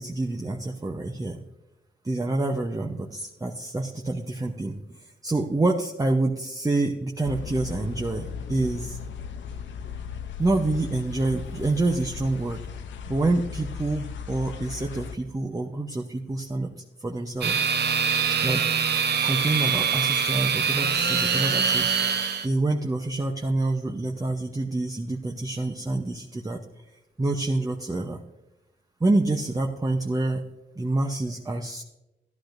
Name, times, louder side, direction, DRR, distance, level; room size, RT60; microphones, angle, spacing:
voice 1, 0.0-1.4 2.0-4.8 5.2-9.0 10.4-12.6 13.1-16.7 17.0-18.6 19.2-21.9 22.4-26.6 27.2-28.2 29.0-30.4 30.8-31.8, right 2 dB, 20° right, 2 dB, 0.8 m, -27 dB
sound 1, 7.2-15.2, left 7 dB, 85° left, 0.7 m, -37 dB
sound 2, 17.4-22.5, right 6 dB, 65° right, 0.9 m, -24 dB
14.5 x 11.0 x 2.6 m, 0.97 s
cardioid pair, 65°, 19 cm